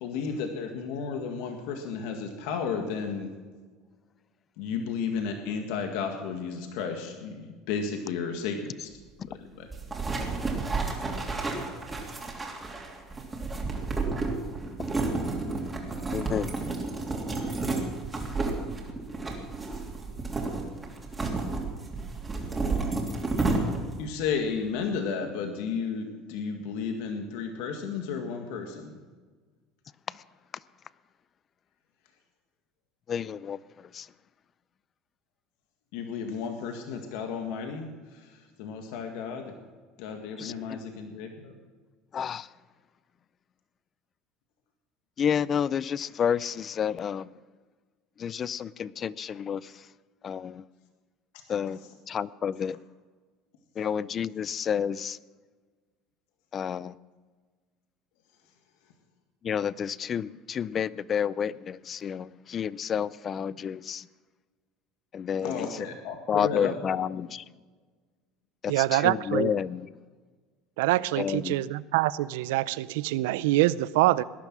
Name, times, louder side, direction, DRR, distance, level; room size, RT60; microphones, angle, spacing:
voice 1, 0.0-3.3 4.6-8.9 9.5-9.7 24.0-28.9 35.9-37.9 38.6-39.5 40.0-41.5 65.4-67.0, left 6 dB, 75° left, 4 dB, 1.9 m, -33 dB
sound 1, 9.7-24.0, right 3 dB, 15° right, 3.0 m, -31 dB
voice 2, 16.1-16.5 30.1-30.2 33.1-34.1 40.4-40.8 42.1-42.5 45.2-47.3 48.2-49.8 50.2-50.6 51.5-51.8 52.1-52.8 53.8-55.2 56.5-56.9 59.4-64.1 65.1-65.8 66.3-67.4 68.6-69.9 71.2-71.6, left 8 dB, 35° left, 20 dB, 0.4 m, -30 dB
voice 3, 68.7-69.5 70.8-74.2, right 17 dB, 90° right, 18 dB, 0.5 m, -25 dB
18.5 x 11.0 x 6.2 m, 1.4 s
supercardioid pair, 130°, 0 cm